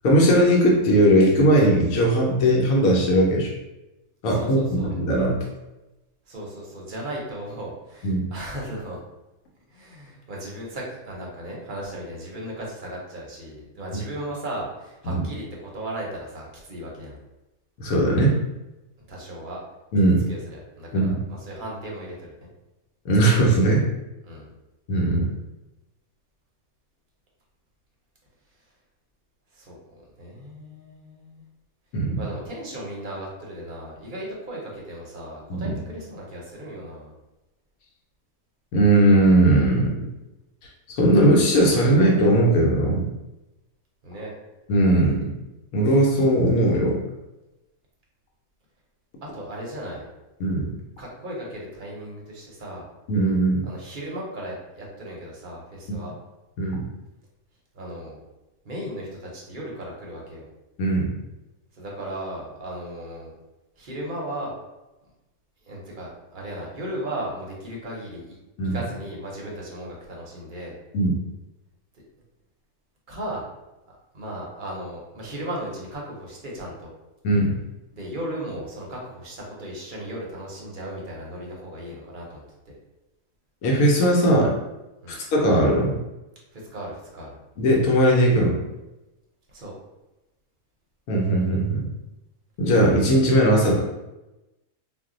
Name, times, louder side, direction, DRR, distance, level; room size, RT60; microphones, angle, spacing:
voice 1, 0.0-3.5 4.2-5.4 8.0-8.2 15.1-15.2 17.8-18.4 19.9-20.3 20.9-21.2 23.0-23.9 24.9-25.3 31.9-32.2 35.5-35.7 38.7-40.0 40.9-43.1 44.7-45.3 45.7-47.0 50.4-50.7 53.1-53.7 56.6-56.8 60.8-61.1 68.6-68.8 70.9-71.2 77.2-77.5 83.6-84.5 85.1-86.0 87.6-88.6 91.1-91.9 92.6-93.8, right 1 dB, 85° left, -2 dB, 1.1 m, -19 dB
voice 2, 4.3-4.9 6.3-9.0 9.7-17.1 19.1-19.6 20.0-22.5 24.2-24.5 29.5-31.4 32.2-37.1 44.0-44.3 49.2-50.1 51.0-52.8 53.6-56.1 57.7-58.2 58.6-60.5 61.7-63.3 63.8-64.5 65.7-68.3 68.7-70.7 73.1-73.4 74.1-76.9 77.9-82.4 85.0-85.1 86.5-87.3 89.5-89.7, right 1 dB, 45° right, -3 dB, 0.7 m, -36 dB
2.6 x 2.0 x 3.7 m, 1.0 s
omnidirectional pair, 1.5 m